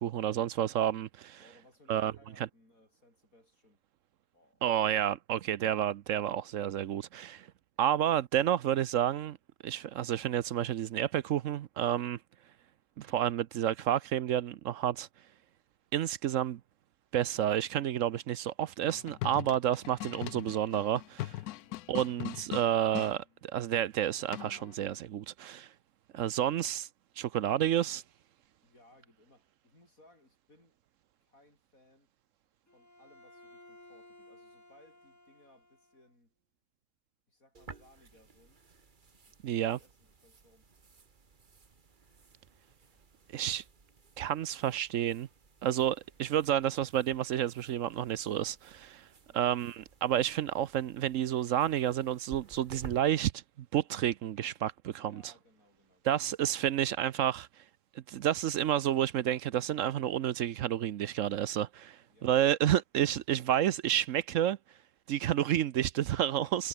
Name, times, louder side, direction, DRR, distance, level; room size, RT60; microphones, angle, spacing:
voice 1, 0.0-1.4 1.9-2.1 4.6-7.5 7.8-9.4 9.6-12.2 13.0-15.1 15.9-16.6 17.1-21.3 21.9-25.7 26.1-26.9 27.2-28.0 39.4-39.8 43.3-43.6 44.2-45.3 45.6-49.1 49.3-55.2 56.0-57.5 58.1-64.6 65.1-66.7, right 11 dB, 65° right, 1.0 m, -30 dB
voice 2, 1.4-3.8 4.3-4.7 7.3-7.5 21.6-21.9 26.1-26.3 28.6-30.8 31.2-32.1 32.7-36.3 37.3-38.8 39.1-40.7 49.3-49.5 54.9-56.3 62.0-62.3, left 1 dB, 70° left, 8.3 m, -64 dB
sound 1, 18.8-23.1 24.3-24.7, left 16 dB, 85° left, 1.1 m, -40 dB
Bowed string instrument, 32.7-36.1, left 1 dB, 10° left, 1.8 m, -57 dB
sound 2, 37.5-53.0, right 4 dB, 35° right, 1.6 m, -55 dB
omnidirectional pair, 1.5 m